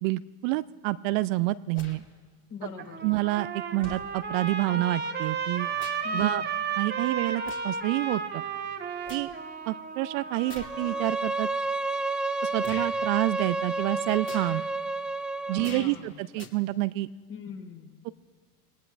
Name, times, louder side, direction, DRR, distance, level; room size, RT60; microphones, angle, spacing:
voice 1, 0.0-2.0 3.0-5.7 6.1-6.4 6.8-8.4 9.1-9.3 9.7-11.5 12.4-14.7 15.5-17.1 18.0-18.1, right 18 dB, 55° right, 15 dB, 0.5 m, -28 dB
sound 1, 1.7-2.0 3.0-3.1 3.8-4.1 5.3-6.2 6.5-6.7 7.4-7.8 8.3-9.3 10.4-10.8 11.5-11.6 12.6-12.9 14.2-14.7 15.6-16.0 16.3-16.5, left 4 dB, 25° left, 2.1 m, -45 dB
voice 2, 2.5-3.0 6.0-6.5 15.5-16.2 17.3-17.9, left 6 dB, 45° left, -1 dB, 4.8 m, -41 dB
Trumpet, 2.6-11.0, right 6 dB, 20° right, 1.4 m, -33 dB
Bowed string instrument, 10.6-15.8, right 3 dB, ahead, 0.4 m, -30 dB
25.5 x 18.5 x 2.5 m, 1.5 s
hypercardioid pair, 75°, 47 cm